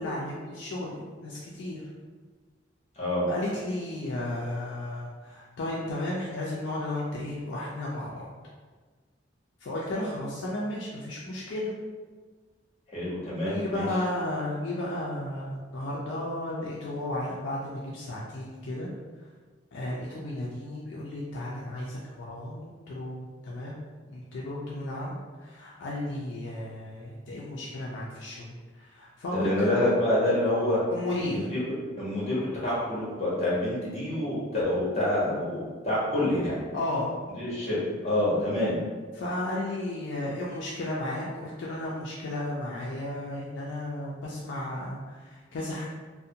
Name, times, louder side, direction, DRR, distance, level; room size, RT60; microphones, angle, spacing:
voice 1, 0.0-1.9 3.3-8.3 9.6-11.7 13.5-18.9 19.7-23.8 24.1-29.5 29.8-29.9 30.9-31.5 36.7-37.1 39.1-45.8, left 1 dB, 75° left, -5 dB, 0.4 m, -34 dB
voice 2, 12.9-13.9 29.3-30.8 31.2-36.6 37.4-38.7, left 1 dB, 35° left, -8 dB, 1.0 m, -27 dB
2.5 x 2.1 x 2.6 m, 1.4 s
head